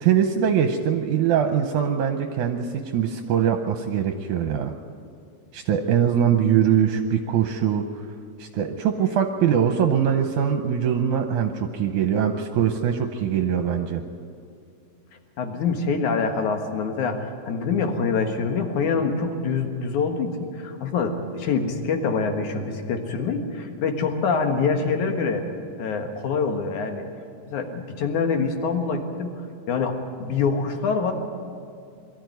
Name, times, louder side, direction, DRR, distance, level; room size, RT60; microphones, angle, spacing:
voice 1, 0.0-4.7 5.5-8.1 8.4-14.0, right 8 dB, 75° right, 6 dB, 2.1 m, -22 dB
voice 2, 15.4-25.5 25.8-27.0 27.5-29.3 29.7-31.1, left 5 dB, 65° left, 5 dB, 2.8 m, -25 dB
22.0 x 13.5 x 9.3 m, 2.5 s
omnidirectional pair, 3.9 m